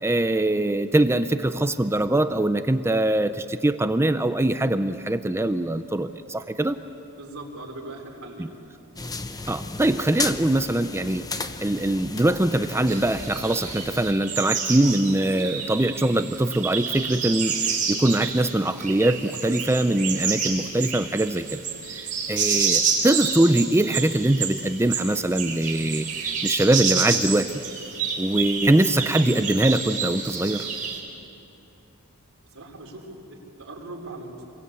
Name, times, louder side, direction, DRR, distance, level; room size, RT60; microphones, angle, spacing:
voice 1, 0.0-6.8 8.4-8.5 9.5-11.3 11.6-21.6 21.9-27.5 28.2-30.7, right 1 dB, 10° right, 10 dB, 0.6 m, -22 dB
voice 2, 7.2-8.5 32.5-34.5, right 2 dB, 65° right, -1 dB, 4.5 m, -40 dB
sound 1, 9.0-14.1, left 3 dB, 15° left, 0.8 m, -34 dB
sound 2, 12.9-31.0, right 6 dB, 40° right, 4.2 m, -29 dB
27.5 x 22.0 x 8.3 m, 2.8 s
head